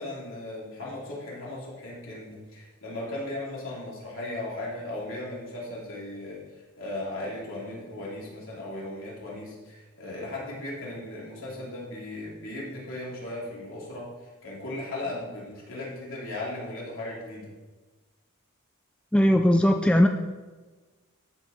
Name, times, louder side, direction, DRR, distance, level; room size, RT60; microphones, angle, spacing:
voice 1, 0.0-6.4 6.8-17.5, left 1 dB, 60° left, -6 dB, 3.3 m, -37 dB
voice 2, 19.1-20.1, equal, 5° left, 4 dB, 0.3 m, -19 dB
13.5 x 4.8 x 4.4 m, 1.3 s
head